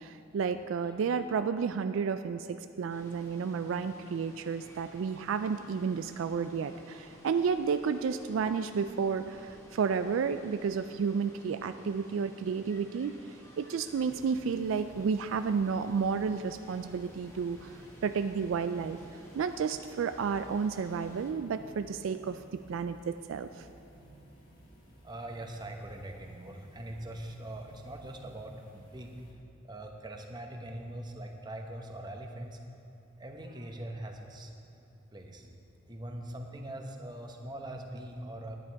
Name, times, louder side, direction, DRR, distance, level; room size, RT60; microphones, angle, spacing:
voice 1, 0.0-13.1 13.6-19.0 19.3-23.7, right 6 dB, 65° right, 10 dB, 0.3 m, -31 dB
Water, 2.9-21.3, equal, 15° left, 1.2 m, -55 dB
sound 1, 13.9-29.3, right 1 dB, 45° left, 2.1 m, -56 dB
voice 2, 25.0-29.1 29.6-32.6 33.2-34.5 35.1-35.5 35.9-38.6, right 1 dB, 20° right, 3 dB, 0.9 m, -42 dB
10.0 x 9.8 x 4.6 m, 2.9 s
head